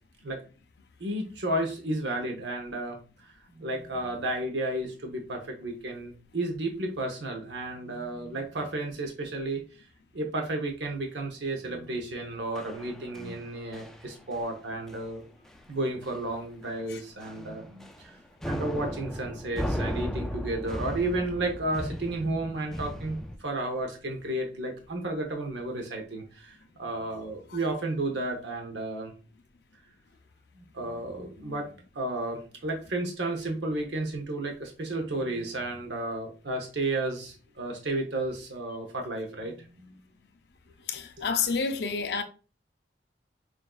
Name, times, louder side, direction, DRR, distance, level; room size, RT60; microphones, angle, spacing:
voice 1, 1.0-9.6 10.1-15.2 15.7-18.2 18.4-29.1 30.6-31.7 31.9-40.0, right 2 dB, 75° right, 0.8 m, -32 dB
sound 1, 12.5-13.4 13.7-14.0 14.3-14.6 14.9-15.1 15.5-15.6 16.0-16.4 16.6-16.8 17.2-18.1 18.4-23.4, equal, ahead, 0.3 m, -36 dB
voice 2, 40.9-42.2, left 5 dB, 65° left, 0.5 m, -29 dB
5.9 x 2.6 x 2.3 m
head